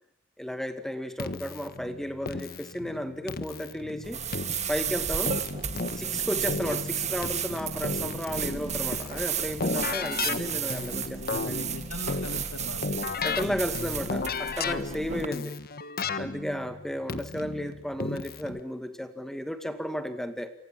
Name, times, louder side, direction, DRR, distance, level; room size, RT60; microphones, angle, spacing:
voice 1, 0.4-4.2 4.7-5.4 5.9-11.7 13.2-15.5 16.2-20.5, equal, ahead, 8 dB, 2.0 m, -34 dB
Keyboard (musical), 1.2-18.6, left 3 dB, 45° left, 1.5 m, -35 dB
sound 1, 4.0-15.3, right 8 dB, 35° right, 1.9 m, -33 dB
voice 2, 6.3-6.7 10.9-11.0 11.3-13.0 15.0-15.1, left 2 dB, 85° left, 6 dB, 2.5 m, -41 dB
29.5 x 24.5 x 7.5 m, 0.64 s
head